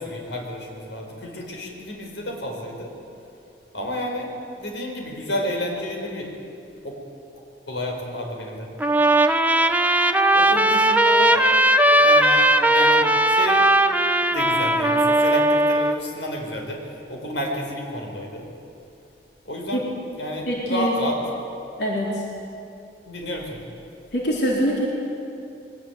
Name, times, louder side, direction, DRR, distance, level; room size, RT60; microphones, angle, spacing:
voice 1, 0.0-2.9 3.7-4.3 4.6-6.3 6.8-6.9 7.7-8.7 10.3-11.5 12.0-13.7 14.3-16.8 17.1-18.4 19.4-19.8 20.2-21.2 23.0-23.6, equal, 85° left, 1 dB, 4.7 m, -30 dB
Trumpet, 8.8-16.0, right 1 dB, 10° right, 0.9 m, -18 dB
voice 2, 20.5-20.9 21.8-22.2 24.1-24.9, equal, 70° left, -3 dB, 4.1 m, -23 dB
23.0 x 19.0 x 9.4 m, 2.7 s
head